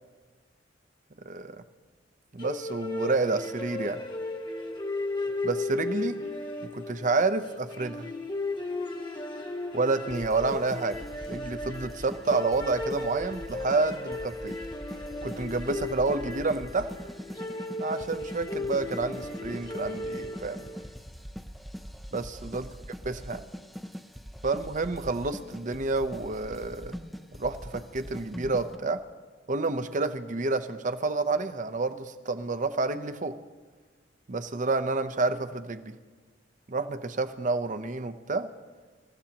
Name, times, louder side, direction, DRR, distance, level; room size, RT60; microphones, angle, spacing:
voice 1, 2.3-4.0 5.4-6.2 6.7-8.1 9.7-11.0 11.3-14.5 15.2-16.9 17.8-20.7 22.1-22.6 23.1-23.4 24.4-26.9 27.4-29.0 29.5-33.4 34.3-36.0 36.7-38.5, right 3 dB, 45° right, 10 dB, 0.8 m, -29 dB
sound 1, 2.4-20.9, left 2 dB, 25° left, 1.2 m, -36 dB
sound 2, 10.1-28.8, equal, ahead, 0.6 m, -42 dB
27.0 x 14.5 x 3.0 m, 1.4 s
head